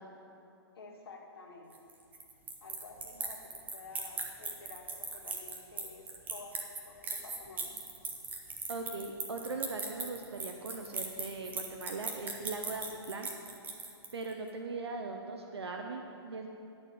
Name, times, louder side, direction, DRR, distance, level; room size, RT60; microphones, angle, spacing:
voice 1, 0.8-1.8 2.6-7.8, left 3 dB, 65° left, -2 dB, 1.9 m, -51 dB
sound 1, 1.7-14.3, right 4 dB, 15° right, 0.9 m, -39 dB
voice 2, 8.7-13.3 14.1-16.5, right 3 dB, 80° right, 3 dB, 0.8 m, -40 dB
11.0 x 4.4 x 8.0 m, 2.7 s
hypercardioid pair, 130°, 13 cm